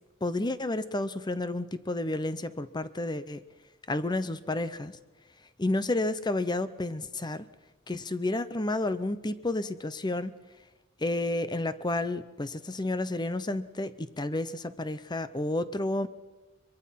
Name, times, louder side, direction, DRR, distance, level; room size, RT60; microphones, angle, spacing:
voice 1, 0.2-3.4 3.9-5.0 5.6-7.4 7.9-10.3 11.0-16.1, left 2 dB, 20° left, 13 dB, 0.7 m, -31 dB
23.5 x 22.5 x 5.8 m, 1.2 s
head